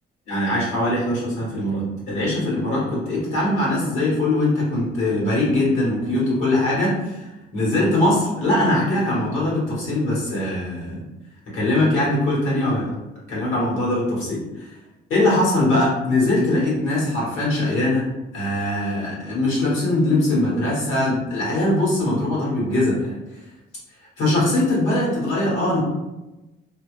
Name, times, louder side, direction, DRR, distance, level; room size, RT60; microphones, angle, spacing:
voice 1, 0.3-11.0 11.5-12.9 13.3-14.7 15.1-23.1 24.2-25.8, left 1 dB, 85° left, -6 dB, 1.4 m, -21 dB
2.7 x 2.0 x 3.1 m, 1.0 s
cardioid pair, 90°, 20 cm